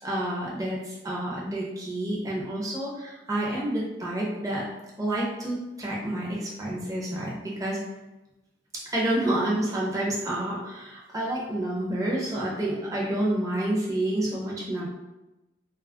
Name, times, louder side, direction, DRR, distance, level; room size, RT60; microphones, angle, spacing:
voice 1, 0.0-4.6 5.0-7.8 8.9-14.9, right 1 dB, 20° right, -5 dB, 0.5 m, -29 dB
2.2 x 2.0 x 3.5 m, 1.0 s
head